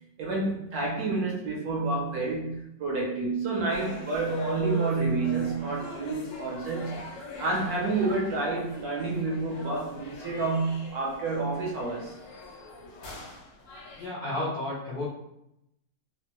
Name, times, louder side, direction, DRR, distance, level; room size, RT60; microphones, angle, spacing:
voice 1, 0.2-7.0 7.4-12.2, right 3 dB, 65° right, -2 dB, 1.0 m, -29 dB
sound 1, 3.7-14.1, left 2 dB, 90° left, 1.6 m, -42 dB
voice 2, 13.9-15.0, left 1 dB, 70° left, -6 dB, 0.5 m, -32 dB
3.3 x 2.1 x 2.9 m, 0.82 s
omnidirectional pair, 2.0 m